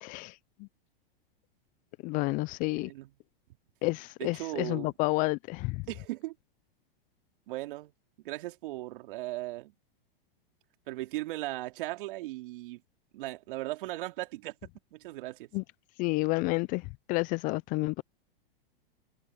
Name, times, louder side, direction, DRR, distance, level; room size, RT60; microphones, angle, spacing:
voice 1, 0.0-0.3 2.0-2.9 3.8-5.8 15.5-15.6 16.0-16.8 17.1-18.0, left 25 dB, 30° left, 0.4 m, -30 dB
voice 2, 2.8-3.1 4.2-4.9 5.9-6.3 7.5-7.9 8.2-9.7 10.9-12.8 13.1-14.5 14.9-15.5, right 18 dB, 60° right, 2.8 m, -37 dB
hypercardioid pair, 115°, 30 cm